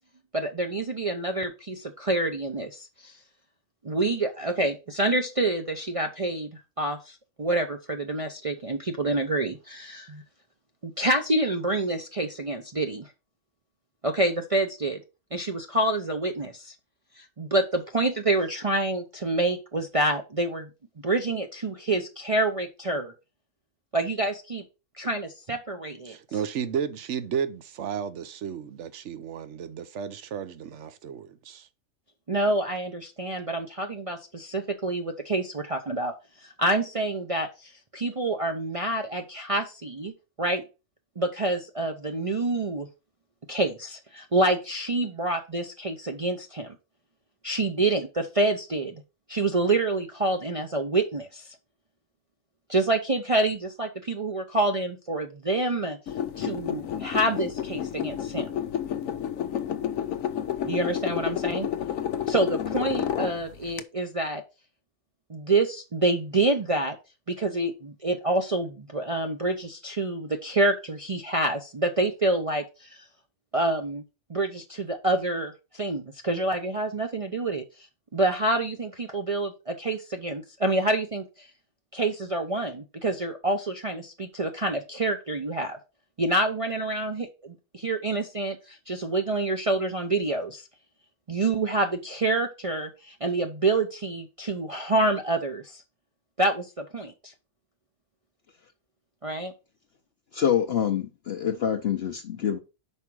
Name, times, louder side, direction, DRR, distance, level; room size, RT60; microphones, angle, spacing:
voice 1, 0.3-3.1 3.8-10.2 10.8-13.1 14.0-15.0 15.3-16.7 17.2-20.7 21.0-23.1 23.9-24.6 25.0-26.2 32.3-36.1 36.4-40.1 40.4-40.6 41.2-42.9 43.5-46.8 47.4-49.0 49.3-51.4 52.7-56.0 56.4-58.5 60.6-61.7 62.3-64.4 65.3-67.0 67.3-73.0 73.5-74.0 74.3-77.6 78.1-81.5 81.9-85.8 86.2-90.7 91.3-95.8 96.4-97.3 99.2-99.5, right 2 dB, 35° right, 0.6 m, -27 dB
voice 2, 26.1-31.7, right 7 dB, 65° right, 1.0 m, -33 dB
sound 1, 56.1-63.8, left 9 dB, 80° left, 1.0 m, -30 dB
voice 3, 100.3-102.6, left 9 dB, 55° left, 0.9 m, -26 dB
5.4 x 4.8 x 6.1 m
omnidirectional pair, 1.4 m